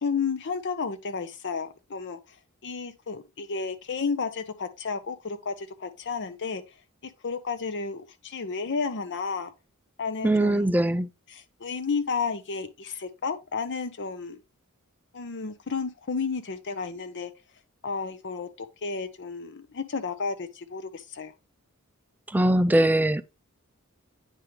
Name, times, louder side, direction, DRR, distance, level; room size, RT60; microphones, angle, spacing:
voice 1, 0.0-2.2 2.6-6.6 7.2-9.5 10.0-10.7 11.3-14.4 15.1-17.3 17.8-21.3, left 5 dB, 55° left, 0.6 m, -32 dB
voice 2, 10.2-11.1 22.3-23.2, right 1 dB, 10° right, 0.3 m, -21 dB
9.0 x 3.6 x 3.1 m
head